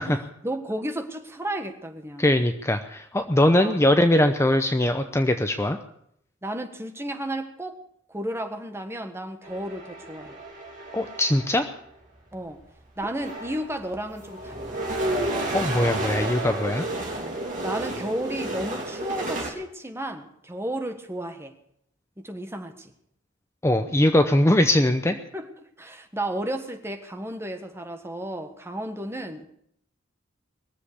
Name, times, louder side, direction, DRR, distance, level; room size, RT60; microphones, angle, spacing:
voice 1, 0.0-2.2 3.4-3.8 6.4-7.8 8.1-10.4 12.3-12.6 13.0-14.8 17.2-21.5 22.2-22.9 25.3-25.5 25.8-29.5, right 1 dB, 15° right, 6 dB, 1.5 m, -33 dB
voice 2, 2.2-5.8 10.9-11.7 15.5-16.8 23.6-25.2, left 1 dB, 15° left, 7 dB, 0.7 m, -21 dB
sound 1, 9.4-11.7 12.6-12.7 13.0-19.5, right 1 dB, 40° right, 3.4 m, -31 dB
22.0 x 7.7 x 8.4 m, 0.70 s
head